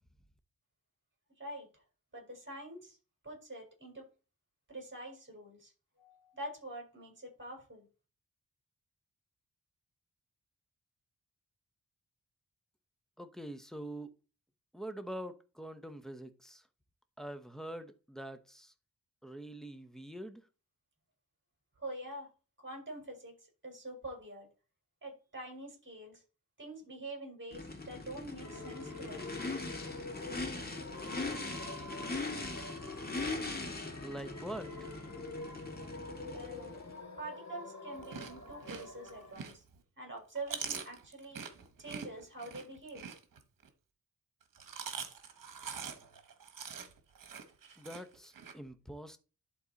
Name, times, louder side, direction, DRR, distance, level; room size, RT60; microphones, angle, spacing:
voice 1, 1.4-1.8 2.1-3.0 3.2-4.1 4.7-5.7 6.0-7.9 21.8-22.3 22.6-23.4 23.6-24.5 25.0-26.2 26.6-29.4 36.3-36.9 37.2-39.6 40.0-41.5 41.8-43.0, right 1 dB, 35° right, 4.5 m, -45 dB
voice 2, 13.2-14.1 14.7-16.7 17.2-18.7 19.2-20.4 34.0-34.9 47.8-49.2, right 1 dB, ahead, 1.0 m, -44 dB
Race car auto racing / Idling / Accelerating revving vroom, 27.5-36.9, left 3 dB, 25° left, 2.0 m, -41 dB
sound 1, 28.4-39.3, left 2 dB, 55° left, 2.3 m, -47 dB
Chewing mastication, 37.9-39.8 40.2-43.7 44.4-48.5, right 6 dB, 70° right, 1.3 m, -44 dB
11.5 x 3.9 x 4.1 m
cardioid pair, 75°, 34 cm